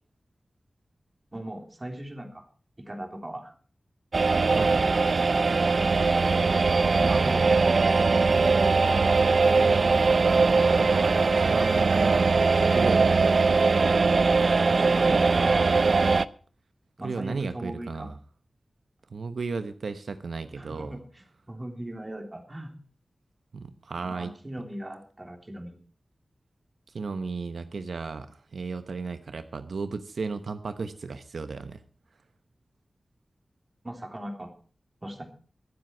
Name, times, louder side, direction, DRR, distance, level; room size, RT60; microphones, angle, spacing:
voice 1, 1.3-2.5 2.8-3.5 6.8-7.8 14.7-15.8 17.0-18.1 20.6-22.7 24.0-25.8 33.8-34.5 35.0-35.3, right 1 dB, 25° right, 4 dB, 3.4 m, -38 dB
sound 1, 4.1-16.2, right 4 dB, 60° right, 0.6 m, -21 dB
voice 2, 4.5-5.0 7.1-7.2 10.3-13.3 17.0-18.2 19.1-21.0 23.5-24.3 26.9-31.8, right 4 dB, 90° right, 10 dB, 1.0 m, -34 dB
23.5 x 7.9 x 4.5 m, 0.41 s
wide cardioid pair, 105°, 0 cm